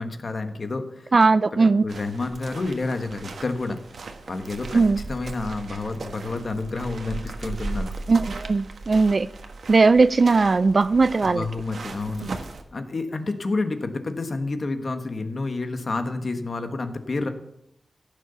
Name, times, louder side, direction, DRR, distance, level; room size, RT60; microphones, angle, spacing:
voice 1, 0.0-1.1 1.5-3.8 4.3-4.8 5.1-7.9 11.2-12.3 12.7-17.3, left 3 dB, 45° left, 1.4 m, -29 dB
voice 2, 1.1-1.8 4.7-5.0 8.1-9.3 9.7-11.4 12.2-12.4, right 4 dB, 40° right, 0.4 m, -18 dB
sound 1, 1.9-12.6, right 3 dB, 70° right, 1.4 m, -37 dB
15.5 x 6.8 x 7.0 m
wide cardioid pair, 130°, 0 cm